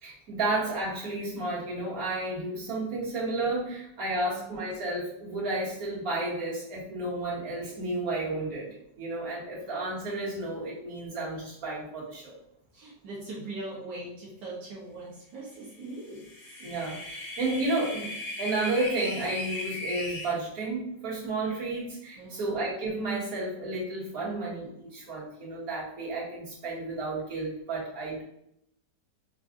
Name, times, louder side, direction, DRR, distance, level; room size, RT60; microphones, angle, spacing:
voice 1, 0.0-8.7 9.0-12.3 16.6-18.1 18.4-28.2, right 2 dB, 55° right, -7 dB, 2.1 m, -32 dB
voice 2, 4.1-4.6 12.7-16.3 22.2-22.5, right 2 dB, 80° right, -6 dB, 1.6 m, -41 dB
sound 1, 16.0-20.3, left 2 dB, 70° left, 1.4 m, -37 dB
4.8 x 2.5 x 3.7 m, 0.78 s
omnidirectional pair, 1.9 m